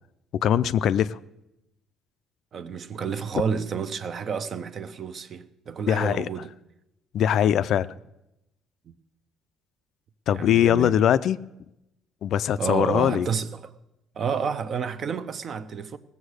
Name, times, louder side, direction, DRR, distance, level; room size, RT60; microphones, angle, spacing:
voice 1, 0.3-1.2 5.9-6.3 7.1-7.9 10.3-11.4 12.2-13.3, left 10 dB, 55° left, 0.4 m, -21 dB
voice 2, 2.5-6.5 10.3-11.0 12.6-13.7 14.1-16.0, right 6 dB, 40° right, 0.7 m, -30 dB
18.0 x 7.2 x 6.5 m
cardioid pair, 140°, 0 cm